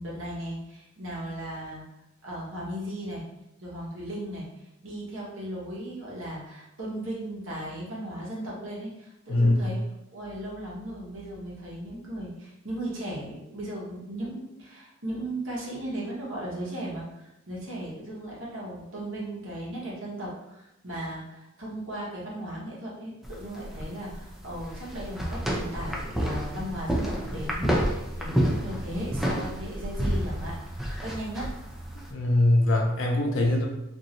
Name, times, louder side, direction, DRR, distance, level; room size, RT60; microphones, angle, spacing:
voice 1, 0.0-1.8 2.2-3.3 3.6-4.5 4.8-9.8 10.1-31.5, right 1 dB, 70° right, -5 dB, 1.0 m, -36 dB
sound 1, 23.2-32.1, equal, ahead, 0.3 m, -30 dB
voice 2, 32.1-33.7, left 1 dB, 65° left, 0 dB, 0.6 m, -22 dB
3.0 x 2.6 x 2.6 m, 0.88 s
head